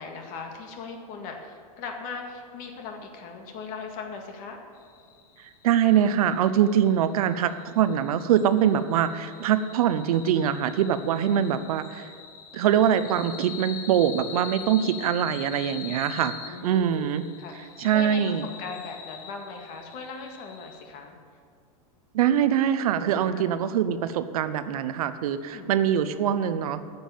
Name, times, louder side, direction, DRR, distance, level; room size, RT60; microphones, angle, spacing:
voice 1, 0.0-4.6 16.5-17.1 17.4-18.2 18.6-21.2 23.3-23.4 25.5-25.8, left 4 dB, 45° left, 3 dB, 1.9 m, -39 dB
sound 1, 4.8-20.8, left 7 dB, 80° left, 1.6 m, -44 dB
voice 2, 5.4-12.1 12.5-17.2 17.6-18.5 22.1-26.8, right 9 dB, 75° right, 12 dB, 0.8 m, -23 dB
9.3 x 7.1 x 8.8 m, 2.2 s
hypercardioid pair, 125°, 19 cm